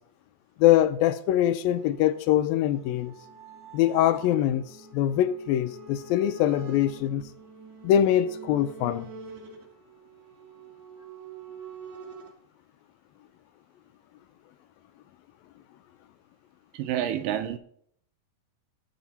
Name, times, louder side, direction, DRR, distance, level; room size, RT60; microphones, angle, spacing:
voice 1, 0.6-3.1 3.7-4.7 4.9-7.2 7.8-9.1, left 12 dB, 80° left, 2.4 m, -23 dB
sound 1, 1.7-12.3, right 4 dB, 55° right, 2.8 m, -46 dB
voice 2, 16.7-17.6, right 11 dB, 80° right, 2.1 m, -28 dB
18.5 x 7.2 x 4.1 m
omnidirectional pair, 4.3 m